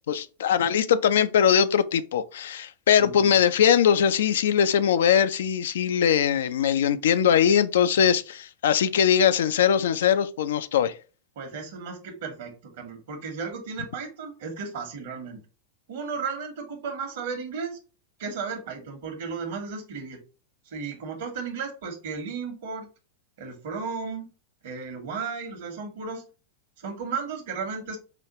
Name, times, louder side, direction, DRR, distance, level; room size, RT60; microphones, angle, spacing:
voice 1, 0.1-10.9, left 8 dB, 60° left, 0.3 m, -21 dB
voice 2, 3.0-3.3 11.4-15.4 15.9-17.8 18.2-20.2 20.7-22.9 23.4-24.3 24.6-26.3 26.8-28.0, right 5 dB, 55° right, 1.0 m, -34 dB
4.9 x 2.3 x 2.9 m
figure-of-eight pair, 90°, 0 cm